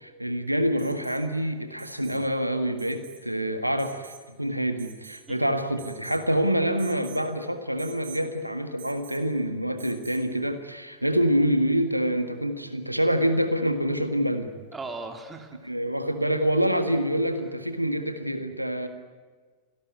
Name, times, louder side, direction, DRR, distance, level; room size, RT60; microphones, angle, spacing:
voice 1, 0.0-14.5 15.6-18.9, equal, 90° right, 8 dB, 1.7 m, -26 dB
Alarm, 0.8-1.2 1.8-2.3 2.8-3.2 3.8-4.3 4.8-5.3 5.8-6.3 6.8-7.2 7.8-8.3 8.8-9.3 9.8-10.3 12.0-12.1, right 7 dB, 55° right, 3.9 m, -47 dB
voice 2, 14.7-15.6, right 3 dB, 15° right, 4 dB, 3.6 m, -37 dB
27.0 x 18.0 x 9.6 m, 1.5 s
figure-of-eight pair, 90°, 0 cm